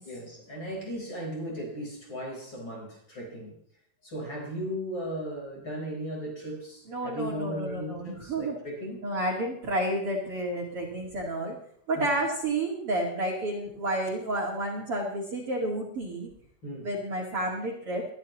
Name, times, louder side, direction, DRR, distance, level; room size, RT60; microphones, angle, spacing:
voice 1, 0.0-3.6 4.0-9.0 12.0-12.1 16.6-16.9, equal, 30° left, -1 dB, 4.9 m, -36 dB
voice 2, 6.9-8.6 9.0-11.6 11.9-16.3 16.8-18.1, right 1 dB, 45° right, -2 dB, 2.7 m, -30 dB
22.0 x 12.5 x 3.1 m, 0.63 s
omnidirectional pair, 4.3 m